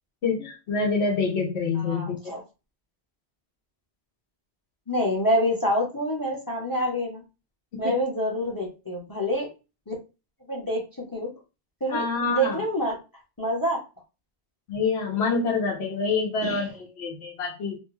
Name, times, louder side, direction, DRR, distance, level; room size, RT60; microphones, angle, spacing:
voice 1, 0.2-2.3 7.8-8.0 11.9-12.6 14.7-17.8, left 4 dB, 80° left, -1 dB, 1.1 m, -26 dB
voice 2, 1.8-2.4 4.9-7.2 7.8-9.5 9.9-10.0 10.5-11.3 11.8-13.0 13.4-13.8 16.4-16.7, equal, 20° left, -1 dB, 0.7 m, -27 dB
2.5 x 2.2 x 3.1 m, 0.29 s
omnidirectional pair, 1.1 m